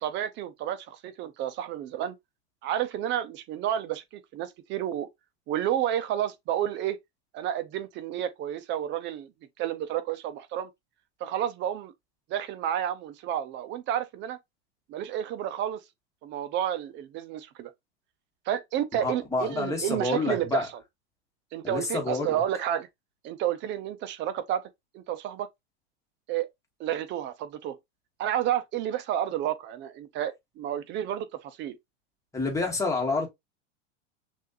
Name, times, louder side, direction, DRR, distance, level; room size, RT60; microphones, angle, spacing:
voice 1, 0.0-2.1 2.6-5.1 5.5-7.0 7.3-9.3 9.6-10.7 11.2-11.9 12.3-14.4 14.9-15.8 16.2-17.7 18.5-20.7 21.5-22.9 23.2-24.6 24.9-25.5 26.3-26.5 26.8-27.8 28.2-31.8, right 11 dB, 30° right, 0.6 m, -30 dB
voice 2, 19.0-20.7 21.6-22.4 32.3-33.3, left 3 dB, 10° left, 1.3 m, -28 dB
6.2 x 2.5 x 2.6 m
supercardioid pair, 140°, 36 cm